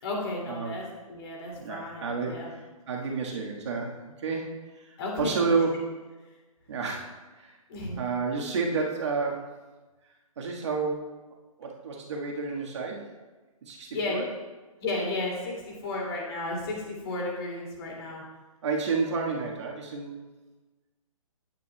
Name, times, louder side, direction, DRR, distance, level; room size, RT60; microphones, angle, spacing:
voice 1, 0.0-2.5 5.0-5.4 7.7-8.0 13.9-14.2 14.8-18.2, left 2 dB, 40° left, -2 dB, 2.4 m, -33 dB
voice 2, 1.6-2.6 2.9-6.0 6.7-7.6 8.0-9.5 10.4-11.1 11.6-13.1 13.6-14.2 18.6-20.2, right 4 dB, 50° right, -1 dB, 1.5 m, -30 dB
9.0 x 8.5 x 2.2 m, 1.2 s
hypercardioid pair, 150°, 18 cm